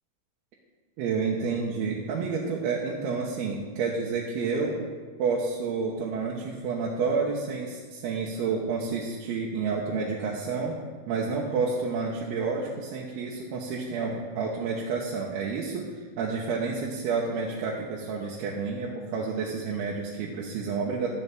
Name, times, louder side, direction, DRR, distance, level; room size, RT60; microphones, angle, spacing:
voice 1, 1.0-4.8 5.2-10.7 11.1-21.1, right 4 dB, 85° right, -3 dB, 2.9 m, -29 dB
13.0 x 11.0 x 3.5 m, 1.5 s
omnidirectional pair, 4.5 m